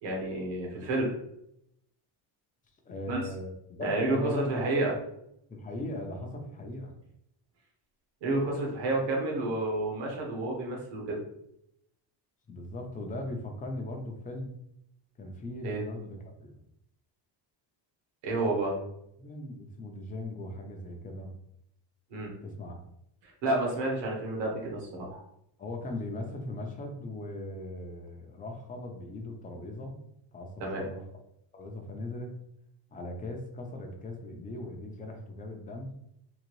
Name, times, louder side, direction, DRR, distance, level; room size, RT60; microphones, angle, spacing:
voice 1, 0.0-1.1 3.1-3.2 3.8-4.9 8.2-11.2 15.6-15.8 18.2-18.7 22.1-22.3 23.2-25.2 30.6-30.8, right 2 dB, 70° right, -1 dB, 1.4 m, -30 dB
voice 2, 2.8-3.5 3.8-4.9 5.5-6.9 12.5-14.6 15.2-16.6 18.4-18.9 19.2-21.3 22.4-22.8 25.6-30.0 30.3-31.0 31.5-32.3 32.9-35.9, left 1 dB, 20° left, 2 dB, 0.4 m, -39 dB
3.8 x 2.6 x 3.0 m, 0.77 s
cardioid pair, 165°, 46 cm